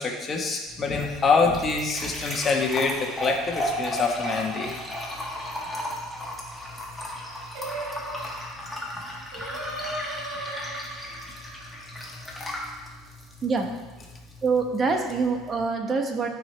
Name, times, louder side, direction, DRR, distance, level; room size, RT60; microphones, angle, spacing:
voice 1, 0.0-4.7 10.0-10.1, left 4 dB, 30° left, 1 dB, 1.3 m, -25 dB
sound 1, 0.7-15.7, equal, 5° left, 1.6 m, -35 dB
Singing, 7.5-12.8, right 2 dB, 75° right, 1.9 m, -38 dB
voice 2, 14.4-16.3, right 4 dB, 30° right, 4 dB, 1.1 m, -25 dB
12.5 x 5.1 x 3.3 m, 1.2 s
supercardioid pair, 125°, 0 cm